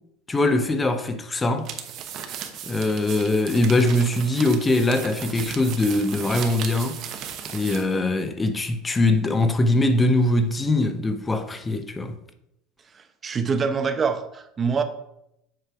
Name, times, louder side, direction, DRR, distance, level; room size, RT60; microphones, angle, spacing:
voice 1, 0.3-1.7 2.6-7.0 7.5-12.2, left 2 dB, 15° left, 0.7 m, -22 dB
sound 1, 1.6-7.9, right 8 dB, 50° right, 0.9 m, -36 dB
voice 2, 12.9-14.8, right 5 dB, 30° right, 0.8 m, -25 dB
7.6 x 3.3 x 5.8 m
supercardioid pair, 110°, 0 cm